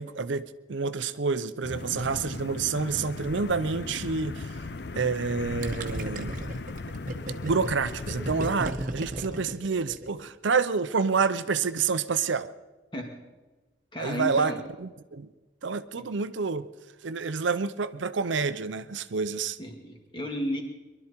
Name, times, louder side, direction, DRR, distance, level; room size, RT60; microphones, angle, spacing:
voice 1, 0.0-4.6 4.9-6.4 7.4-12.5 14.0-14.5 14.8-15.3 15.6-16.7 17.0-19.6, right 5 dB, 75° right, 13 dB, 0.6 m, -28 dB
sound 1, 1.6-8.5, left 3 dB, 55° left, 0.6 m, -37 dB
Gurgling, 5.6-10.3, right 1 dB, 45° right, 1.1 m, -35 dB
voice 2, 13.9-14.6 16.0-16.1 19.6-20.6, equal, 25° left, 2 dB, 2.3 m, -33 dB
22.5 x 12.0 x 4.5 m, 1.2 s
head